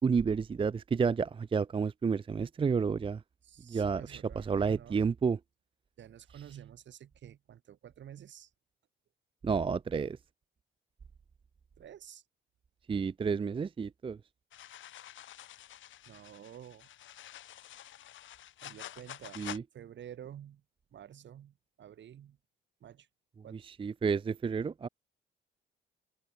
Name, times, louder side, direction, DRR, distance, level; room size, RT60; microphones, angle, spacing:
voice 1, 0.0-3.2 3.7-5.4 9.4-10.2 12.9-14.2 19.4-19.6 23.5-24.9, right 5 dB, 25° right, 0.5 m, -30 dB
voice 2, 3.4-5.0 6.0-8.5 11.8-12.2 16.1-16.9 18.6-19.5 19.7-20.6 20.9-22.4 22.8-23.1 23.4-23.7, right 10 dB, 65° right, 6.7 m, -50 dB
sound 1, 14.5-19.6, left 12 dB, 75° left, 2.3 m, -48 dB
cardioid pair, 90°, 20 cm